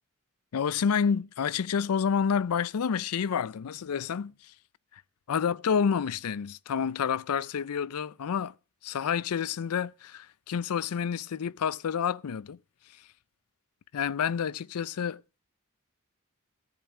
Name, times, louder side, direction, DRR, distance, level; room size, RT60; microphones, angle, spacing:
voice 1, 0.5-4.5 4.9-5.0 5.3-8.5 8.8-12.6 12.9-13.1 13.9-15.2, left 7 dB, 90° left, 0.4 m, -29 dB
14.0 x 7.1 x 4.2 m
head